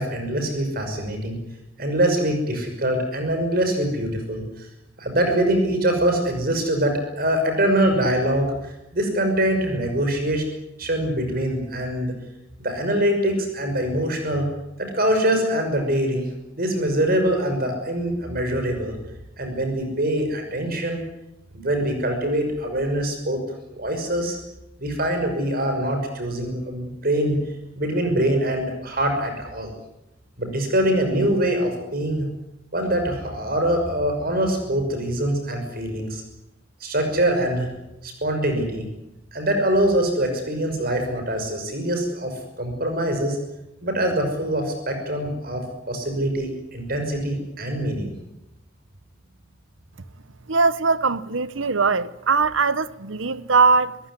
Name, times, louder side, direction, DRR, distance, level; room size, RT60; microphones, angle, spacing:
voice 1, 0.0-1.4 1.8-4.7 5.0-10.4 10.8-12.1 12.6-14.5 14.8-16.3 16.5-19.0 19.4-21.0 21.5-23.4 23.7-24.4 24.8-27.4 27.8-29.8 30.4-32.3 32.7-36.2 36.8-37.7 38.0-38.9 39.3-43.4 43.8-48.1, right 1 dB, 50° right, 6.0 m, -24 dB
voice 2, 50.5-54.0, right 4 dB, 75° right, 1.0 m, -20 dB
27.0 x 16.0 x 9.9 m
head